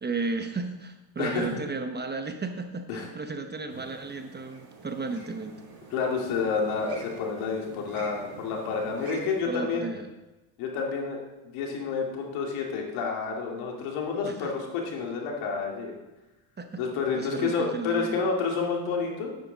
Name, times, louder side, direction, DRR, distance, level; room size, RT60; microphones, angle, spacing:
voice 1, 0.0-5.6 9.5-10.1 14.2-14.5 16.6-16.8 17.2-18.2, right 3 dB, 20° right, 6 dB, 0.9 m, -34 dB
voice 2, 1.2-1.6 2.9-3.1 5.9-9.9 10.6-11.2 11.4-15.9 16.8-19.3, left 5 dB, 75° left, 0 dB, 2.6 m, -29 dB
sound 1, 3.7-9.4, right 3 dB, 45° right, 3.2 m, -46 dB
9.3 x 8.5 x 4.0 m, 1.1 s
supercardioid pair, 85°, 50 cm